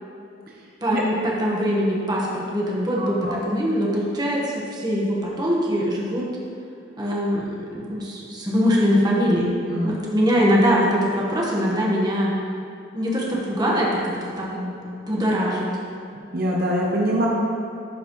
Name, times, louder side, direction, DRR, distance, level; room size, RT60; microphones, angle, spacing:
voice 1, 0.8-6.2 7.0-9.6 9.8-12.3 12.9-14.7 15.1-15.7, equal, 25° right, -4 dB, 1.3 m, -22 dB
voice 2, 3.0-3.4 9.7-9.9 16.3-17.3, equal, 55° right, -3 dB, 0.8 m, -24 dB
12.5 x 5.2 x 3.1 m, 2.6 s
head